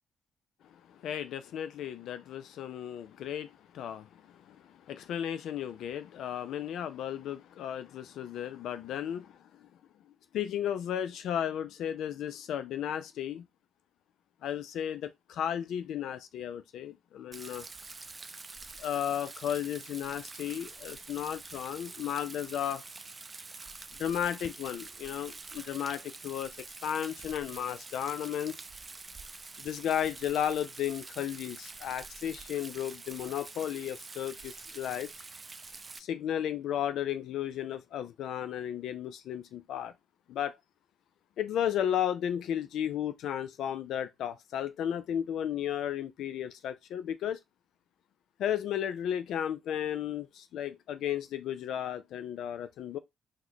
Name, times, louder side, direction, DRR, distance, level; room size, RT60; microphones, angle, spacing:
voice 1, 0.9-9.4 10.3-13.5 14.4-17.7 18.8-22.8 24.0-28.5 29.6-35.1 36.0-39.9 40.3-40.5 41.4-47.4 48.4-53.0, left 10 dB, 75° left, 0.4 m, -34 dB
Rain, 17.3-36.0, right 3 dB, 30° right, 0.4 m, -46 dB
2.9 x 2.1 x 3.9 m
cardioid pair, 90°, 0 cm